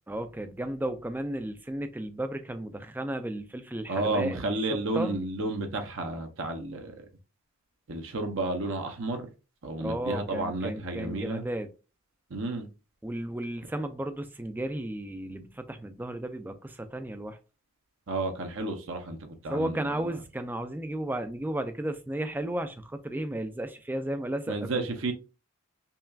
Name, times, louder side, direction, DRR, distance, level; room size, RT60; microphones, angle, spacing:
voice 1, 0.1-5.2 9.8-11.7 13.0-17.4 19.5-24.9, right 1 dB, 10° right, 0.3 m, -34 dB
voice 2, 3.9-6.9 7.9-9.3 9.6-11.4 12.3-12.7 18.1-20.1 24.5-25.1, right 2 dB, 55° right, 0.7 m, -32 dB
5.5 x 2.3 x 2.3 m
head